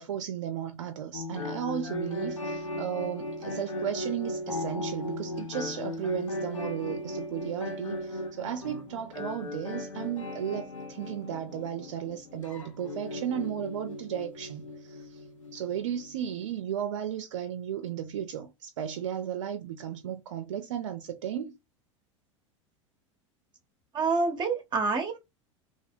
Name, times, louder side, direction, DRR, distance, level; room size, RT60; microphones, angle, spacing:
voice 1, 0.0-15.2 15.5-21.5, right 9 dB, 65° right, 0.4 m, -35 dB
sound 1, 1.1-16.6, left 1 dB, 85° left, 0.5 m, -37 dB
voice 2, 23.9-25.2, right 4 dB, 30° right, 0.6 m, -27 dB
2.7 x 2.0 x 2.5 m
figure-of-eight pair, 80°, 16 cm